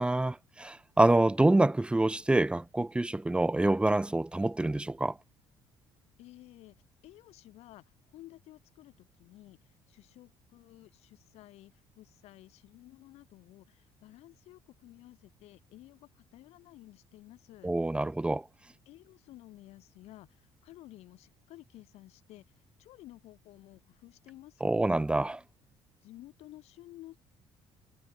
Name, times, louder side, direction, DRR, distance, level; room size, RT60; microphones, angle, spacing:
voice 1, 0.0-5.2 17.6-18.4 24.6-25.4, right 2 dB, 10° right, 1.3 m, -26 dB
voice 2, 6.2-17.7 18.8-22.5 22.8-25.0 26.0-27.2, left 16 dB, 75° left, 6.8 m, -53 dB
cardioid pair, 100°, 11 cm